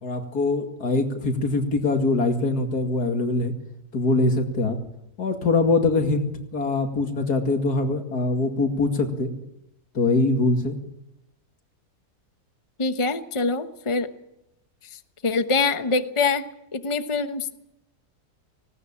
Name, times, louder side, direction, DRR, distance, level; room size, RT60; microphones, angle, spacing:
voice 1, 0.0-3.5 3.9-4.8 5.2-9.3 9.9-10.8, left 3 dB, 85° left, 5 dB, 2.8 m, -23 dB
voice 2, 12.8-14.1 14.9-16.4 16.7-17.5, left 4 dB, 20° left, 9 dB, 1.0 m, -24 dB
19.0 x 18.5 x 8.6 m, 0.85 s
omnidirectional pair, 1.6 m